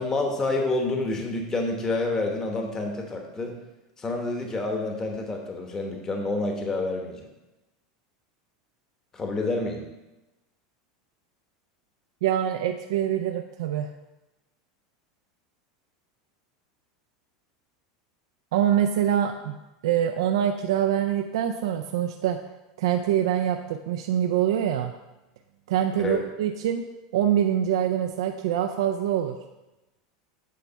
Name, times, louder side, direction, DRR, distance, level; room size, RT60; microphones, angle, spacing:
voice 1, 0.0-3.6 4.0-7.3 9.1-9.9 26.0-26.2, left 2 dB, 20° left, 2 dB, 1.1 m, -28 dB
voice 2, 12.2-13.9 18.5-19.6 19.8-22.4 22.8-24.9 25.7-26.8 27.1-29.4, right 10 dB, 80° right, 5 dB, 0.4 m, -24 dB
8.4 x 3.4 x 5.5 m, 1.0 s
supercardioid pair, 125°, 3 cm